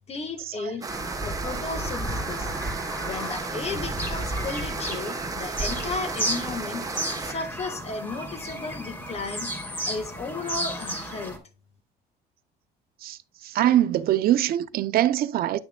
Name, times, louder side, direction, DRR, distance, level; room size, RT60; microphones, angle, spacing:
voice 1, 0.1-2.5 3.0-9.5 9.8-11.4, left 4 dB, 40° left, 1.5 m, -34 dB
sound 1, 0.8-7.3, right 4 dB, 20° right, 1.0 m, -34 dB
Bird vocalization bird call bird song, 0.9-11.4, equal, 15° left, 2.4 m, -33 dB
voice 2, 13.4-15.6, right 12 dB, 60° right, 0.6 m, -22 dB
9.5 x 6.6 x 2.2 m
cardioid pair, 110°, 17 cm